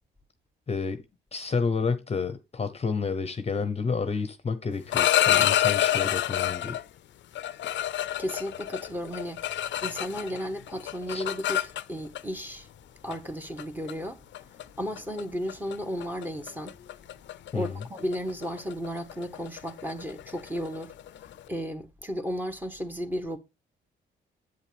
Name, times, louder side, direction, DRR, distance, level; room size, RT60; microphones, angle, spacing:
voice 1, 0.7-1.0 1.3-6.8 11.1-11.2 17.5-17.8, left 5 dB, 30° left, 0.9 m, -30 dB
sound 1, 4.7-6.8 7.4-10.4 10.7-12.2 13.1-13.3 13.6-13.9 14.3-14.6 15.0-15.2 15.5-15.8 16.0-21.4, left 12 dB, 65° left, 0.6 m, -27 dB
voice 2, 8.2-9.4 9.8-12.7 13.0-14.2 14.8-16.8 17.5-20.9 21.5-23.4, equal, 10° right, 1.4 m, -34 dB
8.4 x 7.2 x 3.4 m
cardioid pair, 90°, 20 cm